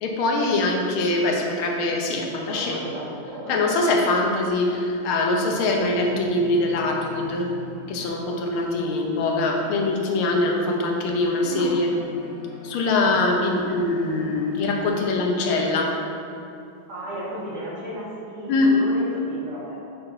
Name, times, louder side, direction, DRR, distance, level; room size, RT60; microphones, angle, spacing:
voice 1, 0.0-2.8 3.5-7.5 7.9-12.0 12.6-16.0 18.5-18.8, left 2 dB, 80° left, 1 dB, 1.7 m, -23 dB
voice 2, 2.5-3.7 11.4-11.7 16.9-19.7, equal, 50° right, -7 dB, 2.0 m, -34 dB
sound 1, 5.6-15.0, left 2 dB, 30° right, 1.6 m, -42 dB
7.7 x 4.5 x 3.8 m, 2.7 s
omnidirectional pair, 2.3 m